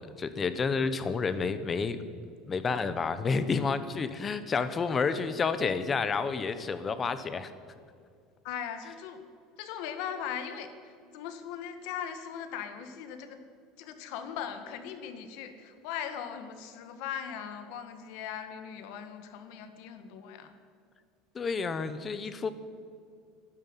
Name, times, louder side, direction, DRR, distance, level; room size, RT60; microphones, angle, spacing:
voice 1, 0.2-2.0 2.5-7.5 21.3-22.5, left 5 dB, 20° left, 12 dB, 0.9 m, -30 dB
voice 2, 8.4-9.2 9.6-13.4 13.8-20.5, left 8 dB, 60° left, 8 dB, 1.7 m, -39 dB
12.5 x 11.0 x 9.8 m, 2.2 s
cardioid pair, 160°, 0 cm